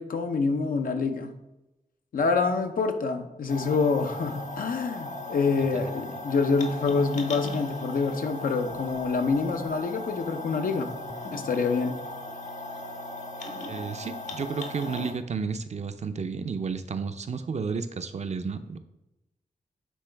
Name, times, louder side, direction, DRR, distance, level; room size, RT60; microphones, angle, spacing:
voice 1, 0.0-1.3 2.1-10.9 11.3-12.0, left 4 dB, 80° left, 6 dB, 0.7 m, -26 dB
sound 1, 3.5-15.1, left 1 dB, 60° left, 1.0 m, -38 dB
voice 2, 13.7-18.8, right 5 dB, 55° right, 9 dB, 0.6 m, -32 dB
9.5 x 3.8 x 3.4 m, 0.95 s
cardioid pair, 60°, 14 cm